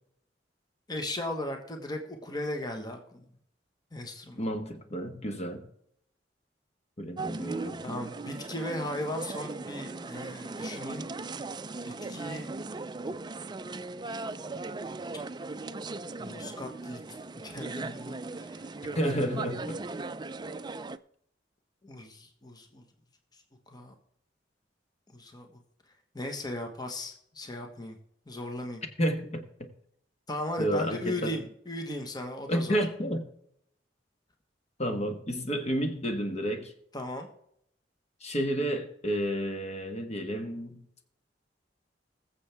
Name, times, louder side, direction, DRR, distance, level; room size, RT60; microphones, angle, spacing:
voice 1, 0.9-3.2 3.9-4.5 7.8-11.1 11.8-12.5 16.2-17.2 17.4-18.7 21.8-22.8 23.3-23.9 25.1-25.5 26.1-28.0 28.3-28.8 30.3-32.8 36.9-37.3, left 1 dB, 25° left, 1.3 m, -37 dB
voice 2, 4.4-5.6 7.0-7.8 18.9-19.8 29.0-29.4 30.6-31.3 32.5-33.2 34.8-36.7 38.2-40.8, equal, 40° left, 1.4 m, -30 dB
sound 1, 7.2-21.0, right 3 dB, 25° right, 0.4 m, -38 dB
21.0 x 7.2 x 3.5 m
head